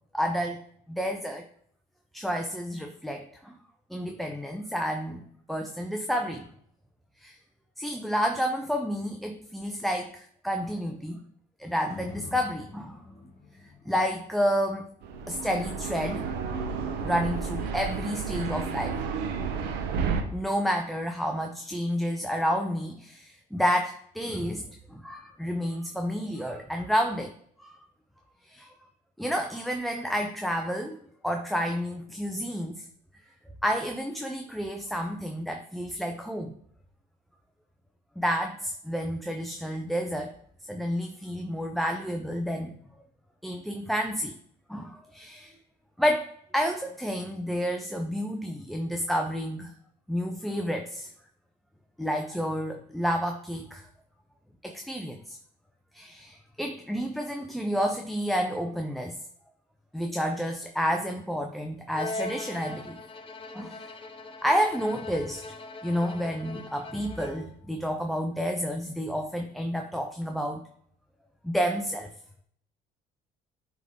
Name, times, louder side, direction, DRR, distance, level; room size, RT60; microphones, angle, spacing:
voice 1, 0.1-0.6 0.9-1.5 2.1-3.5 3.9-6.5 7.2-7.4 7.8-11.2 11.6-13.0 13.9-14.9 15.3-16.3 17.0-19.0 20.3-27.3 27.6-27.8 28.4-28.7 29.2-31.0 31.2-32.9 33.6-36.5 38.2-40.3 40.7-42.8 43.4-44.3 44.7-45.6 46.0-49.7 50.1-51.1 52.0-53.9 54.6-55.4 55.9-59.2 59.9-63.0 63.5-63.9 64.4-65.4 65.8-70.6 71.4-72.1, equal, ahead, 3 dB, 0.6 m, -30 dB
sound 1, 11.9-20.0 20.5-20.6, left 3 dB, 50° left, 2.5 m, -50 dB
sound 2, 15.0-20.2, right 5 dB, 90° right, 0.9 m, -31 dB
Bowed string instrument, 61.9-67.6, left 2 dB, 30° left, 1.0 m, -40 dB
10.5 x 3.7 x 3.7 m, 0.65 s
cardioid pair, 110°, 17 cm